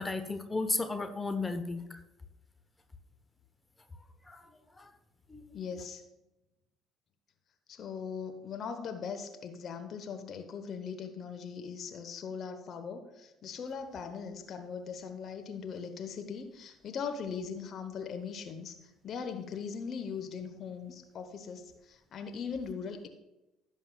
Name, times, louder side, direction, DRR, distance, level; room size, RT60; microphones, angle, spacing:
voice 1, 0.0-2.0 4.3-4.9 5.3-5.6, left 3 dB, 15° left, 9 dB, 1.0 m, -35 dB
voice 2, 5.5-6.0 7.7-23.1, left 6 dB, 45° left, 7 dB, 0.9 m, -40 dB
16.5 x 7.3 x 2.3 m, 0.96 s
figure-of-eight pair, 55°, 0 cm